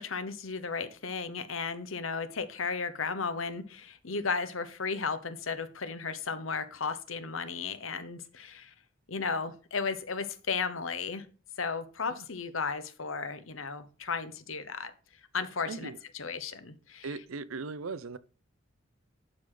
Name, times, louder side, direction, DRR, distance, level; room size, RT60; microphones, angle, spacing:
voice 1, 0.0-8.7 9.1-11.3 11.6-14.9 15.3-17.1, left 5 dB, 70° left, 1.0 m, -34 dB
voice 2, 15.7-16.0 17.0-18.2, right 4 dB, 80° right, 0.6 m, -38 dB
12.0 x 5.0 x 3.9 m
head